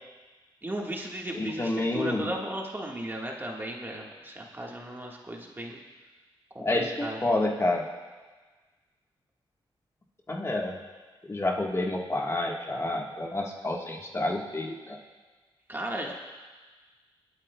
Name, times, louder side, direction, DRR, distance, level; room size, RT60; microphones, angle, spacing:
voice 1, 0.6-5.8 6.5-7.2 15.7-16.1, right 1 dB, 20° right, 0 dB, 1.6 m, -35 dB
voice 2, 1.4-2.3 6.6-7.9 10.3-10.8 11.2-15.0, left 2 dB, 30° left, 0 dB, 1.4 m, -29 dB
26.0 x 8.8 x 2.3 m, 1.3 s
cardioid pair, 65°, 10 cm